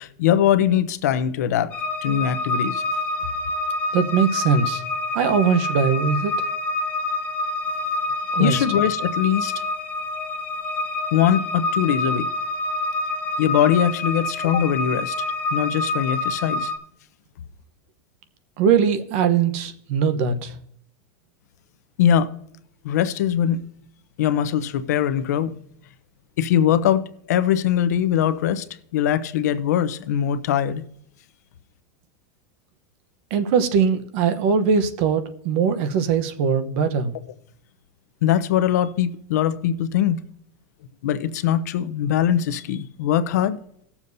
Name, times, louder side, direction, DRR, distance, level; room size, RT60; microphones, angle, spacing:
voice 1, 0.0-1.7 2.0-2.8 8.4-9.6 11.1-12.3 13.4-15.2 15.5-16.7 22.0-22.3 22.8-23.6 24.2-25.5 26.4-27.0 27.3-28.6 28.9-30.8 38.2-40.2 41.0-43.6, left 10 dB, 75° left, 0.8 m, -21 dB
sound 1, 1.7-16.8, left 2 dB, 20° left, 1.2 m, -27 dB
voice 2, 3.9-4.8 5.1-6.3 8.3-8.5 18.6-20.5 33.3-37.1, right 6 dB, 45° right, 0.9 m, -21 dB
18.5 x 7.2 x 2.7 m
supercardioid pair, 170°, 9 cm